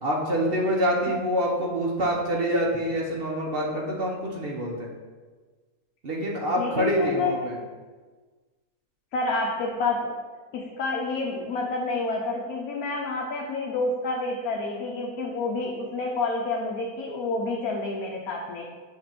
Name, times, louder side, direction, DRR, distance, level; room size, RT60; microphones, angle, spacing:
voice 1, 0.0-4.9 6.0-7.6, equal, 45° right, -1 dB, 0.9 m, -26 dB
voice 2, 6.6-7.4 9.1-10.1 10.5-18.7, left 3 dB, 75° left, -1 dB, 1.2 m, -29 dB
7.4 x 2.9 x 5.8 m, 1.4 s
omnidirectional pair, 1.6 m